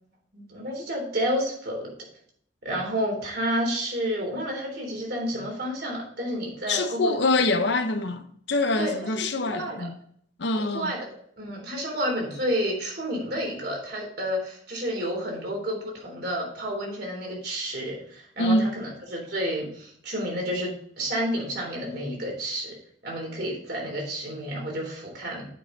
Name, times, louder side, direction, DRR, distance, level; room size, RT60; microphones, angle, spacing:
voice 1, 0.3-1.9 2.6-7.1 8.8-9.9 10.6-11.1 11.4-22.7 23.0-25.5, equal, 55° right, 3.6 m, -30 dB
voice 2, 6.7-9.9 10.4-10.9 18.4-18.7, left 2 dB, 60° left, 0.7 m, -25 dB
9.1 x 5.6 x 4.0 m
head